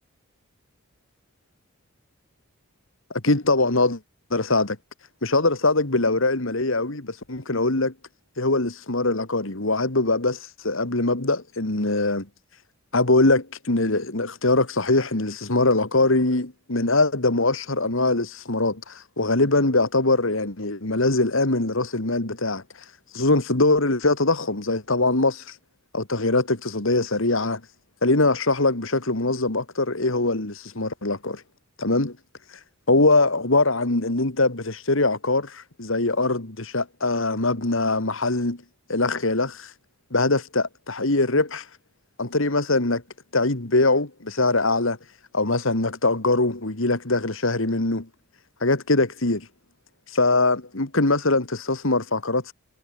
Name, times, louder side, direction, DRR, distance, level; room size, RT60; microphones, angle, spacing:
voice 1, 3.1-4.0 4.3-4.8 5.2-7.9 8.4-12.3 12.9-22.6 23.1-25.6 25.9-27.6 28.0-31.4 31.8-32.2 32.9-38.6 38.9-39.7 40.1-41.7 42.2-43.0 43.3-45.0 45.3-48.1 48.6-49.5 50.1-52.5, left 2 dB, 65° left, 2.1 m, -22 dB
head